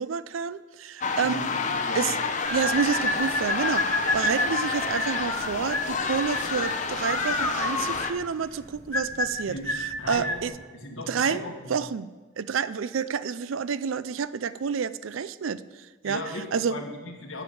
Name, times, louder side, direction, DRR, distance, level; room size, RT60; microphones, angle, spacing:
voice 1, 0.0-1.5 1.9-2.2 2.5-10.5 11.1-11.4 11.7-12.1 12.4-16.2 16.5-16.8, right 6 dB, 85° right, 16 dB, 0.4 m, -29 dB
sound 1, 1.0-8.1, left 4 dB, 35° left, 0.6 m, -29 dB
voice 2, 1.2-2.1 9.5-9.6 10.0-10.4 10.7-11.7 16.0-17.4, left 2 dB, 85° left, 2 dB, 1.7 m, -37 dB
sound 2, 2.4-10.5, left 1 dB, 10° left, 0.9 m, -29 dB
9.0 x 7.1 x 7.6 m, 1.3 s
head